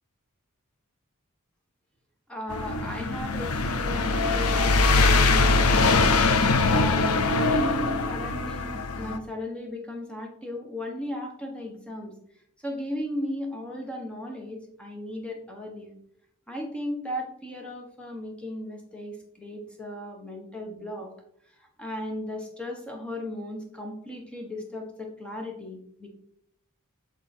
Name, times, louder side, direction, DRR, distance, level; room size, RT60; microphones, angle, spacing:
voice 1, 2.3-6.1 6.7-12.1 12.6-16.0 16.5-21.1 21.6-26.1, left 1 dB, 5° left, 0 dB, 1.2 m, -36 dB
sound 1, 2.5-9.2, left 3 dB, 80° left, 0.7 m, -22 dB
8.8 x 3.6 x 4.4 m, 0.68 s
head